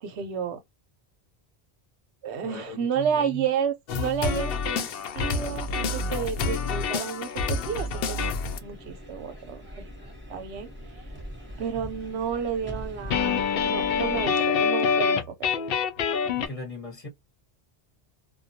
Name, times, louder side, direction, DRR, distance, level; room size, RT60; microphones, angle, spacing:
voice 1, 0.0-0.6 2.2-4.9 5.1-8.2 8.6-9.9 10.3-10.7 11.6-15.2, right 7 dB, 85° right, 0.9 m, -31 dB
voice 2, 2.4-3.4 16.3-17.1, left 1 dB, 35° left, 0.9 m, -38 dB
sound 1, 3.9-8.6 13.1-16.5, left 5 dB, 65° left, 0.7 m, -26 dB
sound 2, 8.5-14.3, equal, 10° right, 0.8 m, -42 dB
2.3 x 2.2 x 2.6 m
omnidirectional pair, 1.1 m